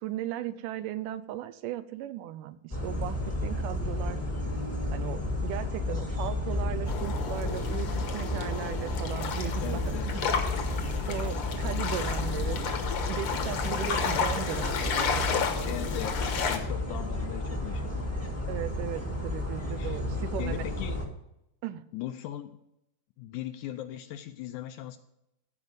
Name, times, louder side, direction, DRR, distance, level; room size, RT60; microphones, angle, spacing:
voice 1, 0.0-4.2 4.9-12.6 13.1-15.8 18.5-20.6 21.6-21.8, right 12 dB, 80° right, 11 dB, 2.1 m, -37 dB
sound 1, 2.7-21.0, left 1 dB, 20° left, 0.4 m, -32 dB
sound 2, 6.9-16.6, left 6 dB, 60° left, 1.5 m, -32 dB
voice 2, 9.6-10.2 15.7-16.2 16.4-18.1 19.8-20.0 20.4-21.0 21.9-22.6 23.2-25.0, left 12 dB, 80° left, 9 dB, 1.8 m, -39 dB
14.5 x 5.2 x 7.9 m, 0.83 s
omnidirectional pair, 3.9 m